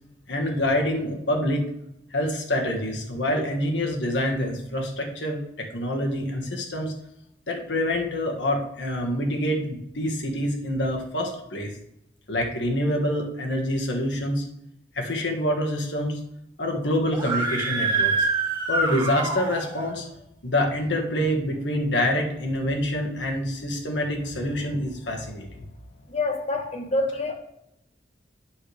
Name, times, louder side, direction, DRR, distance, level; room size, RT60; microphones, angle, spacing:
voice 1, 0.3-1.6 2.1-6.9 7.5-11.7 12.3-14.4 14.9-16.2 16.6-18.3 18.7-20.0 20.4-25.6, left 1 dB, 75° left, 1 dB, 1.6 m, -26 dB
Screaming, 17.1-19.9, right 3 dB, 25° right, 2.1 m, -26 dB
voice 2, 26.1-27.3, left 2 dB, 35° left, 5 dB, 1.1 m, -26 dB
8.9 x 6.6 x 3.4 m, 0.82 s
head